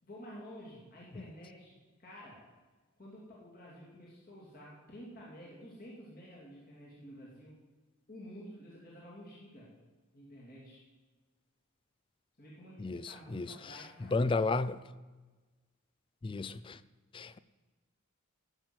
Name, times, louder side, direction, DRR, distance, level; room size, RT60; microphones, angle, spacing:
voice 1, 0.0-2.4 3.0-7.6 8.1-9.7 10.1-10.8 12.4-14.2, equal, 40° left, 2.7 m, -51 dB
voice 2, 12.8-13.5 14.1-14.8 16.2-16.8 17.1-17.4, left 3 dB, 25° left, 0.3 m, -32 dB
13.5 x 6.1 x 7.8 m
head